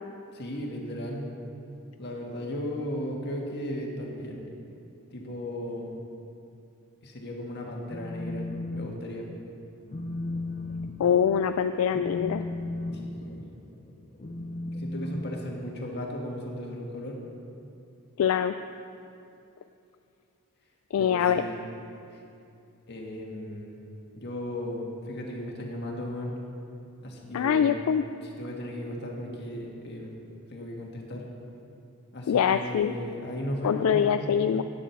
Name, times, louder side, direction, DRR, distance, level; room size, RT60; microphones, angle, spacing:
voice 1, 0.3-1.3 2.0-4.4 5.1-6.0 7.0-8.4 8.7-9.3 12.9-13.4 14.8-17.2 21.0-21.6 22.1-22.2 22.9-23.8 24.1-26.3 27.0-27.7 28.4-30.1 30.5-31.3 32.1-34.1, left 1 dB, 50° left, -1 dB, 1.6 m, -36 dB
Telephone, 7.9-8.9 9.2-9.5 9.9-16.0, left 2 dB, 35° left, 0.8 m, -35 dB
voice 2, 11.0-12.4 18.2-18.6 20.9-21.4 27.3-28.0 32.3-32.9 33.6-34.6, left 8 dB, 75° left, 9 dB, 0.3 m, -24 dB
9.8 x 7.4 x 7.0 m, 2.6 s
head